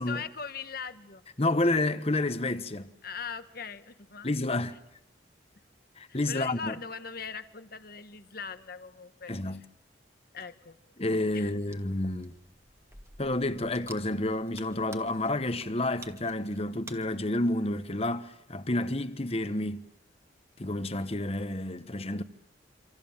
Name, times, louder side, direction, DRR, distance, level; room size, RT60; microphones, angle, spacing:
voice 1, 0.0-1.2 3.0-4.3 6.1-9.7 10.3-10.8 11.3-11.5, left 6 dB, 50° left, 1.4 m, -40 dB
voice 2, 1.4-2.9 4.2-4.8 6.0-6.7 9.3-9.6 11.0-12.3 13.2-19.9 20.6-22.2, left 2 dB, 35° left, 1.2 m, -30 dB
sound 1, 11.3-16.9, right 2 dB, 15° right, 1.8 m, -52 dB
27.5 x 26.0 x 7.3 m
head